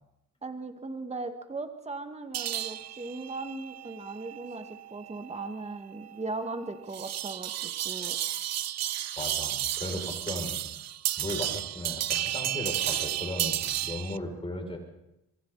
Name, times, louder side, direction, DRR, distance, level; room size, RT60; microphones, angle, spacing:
voice 1, 0.4-8.2, right 3 dB, 20° right, 6 dB, 2.1 m, -38 dB
sound 1, 2.3-14.2, right 12 dB, 60° right, 0.7 m, -33 dB
voice 2, 9.2-10.6 11.2-14.8, left 1 dB, 20° left, 1 dB, 6.8 m, -36 dB
27.5 x 23.0 x 4.2 m, 0.88 s
cardioid pair, 90°, 30 cm